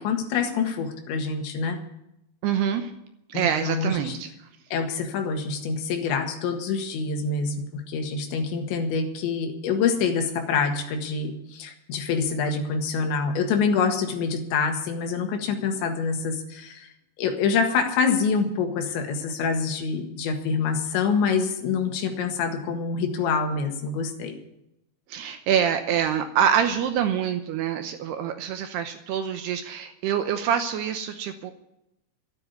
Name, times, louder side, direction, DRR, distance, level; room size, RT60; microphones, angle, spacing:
voice 1, 0.0-1.8 3.3-4.2 4.7-16.9 17.2-24.4, left 5 dB, 75° left, 4 dB, 3.9 m, -26 dB
voice 2, 2.4-2.9 3.3-4.3 25.1-31.5, right 8 dB, 75° right, 7 dB, 2.7 m, -25 dB
13.0 x 9.9 x 9.6 m, 0.83 s
omnidirectional pair, 5.4 m